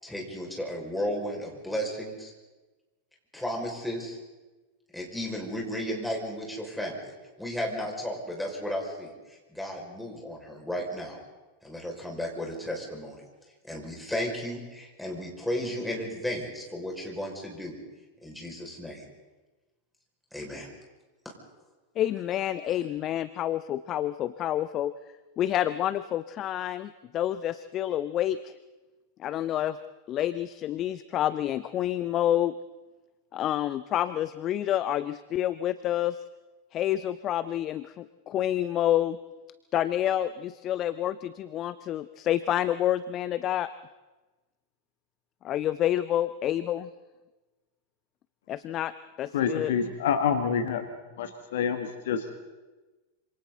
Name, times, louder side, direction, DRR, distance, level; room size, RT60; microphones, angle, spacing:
voice 1, 0.0-2.3 3.3-4.2 4.9-7.1 7.4-11.2 11.6-13.2 13.6-17.8 18.2-19.0 20.3-20.7, equal, 5° left, -1 dB, 5.8 m, -34 dB
voice 2, 22.0-24.9 25.4-28.5 29.2-29.8 30.1-32.5 33.3-36.2 36.7-39.2 39.7-43.7 45.4-46.9 48.5-48.9 49.2-49.7, left 12 dB, 30° left, 15 dB, 0.6 m, -28 dB
voice 3, 49.3-50.9 51.2-52.4, left 7 dB, 55° left, 8 dB, 1.7 m, -27 dB
26.5 x 26.5 x 4.1 m, 1.2 s
figure-of-eight pair, 90°, 0 cm